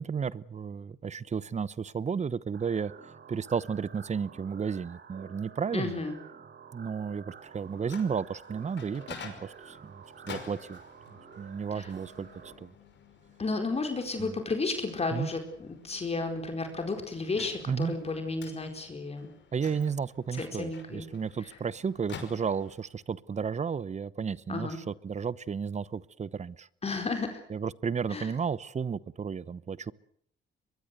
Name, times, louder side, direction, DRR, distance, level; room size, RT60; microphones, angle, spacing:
voice 1, 0.0-2.9 3.3-6.0 6.7-10.8 11.4-12.3 12.6-12.7 14.2-14.4 15.1-15.3 17.7-17.9 19.5-26.7 27.5-29.9, right 6 dB, 35° right, 1.0 m, -33 dB
sound 1, 2.5-12.5, right 7 dB, 55° right, 4.6 m, -50 dB
voice 2, 5.7-6.2 11.7-11.9 13.4-19.3 20.3-21.1 24.5-24.8 26.8-27.4 28.1-28.3, left 3 dB, 30° left, 4.6 m, -33 dB
Microwave oven, 7.5-23.0, left 6 dB, 65° left, 5.6 m, -50 dB
23.0 x 22.0 x 8.1 m
cardioid pair, 90°, 20 cm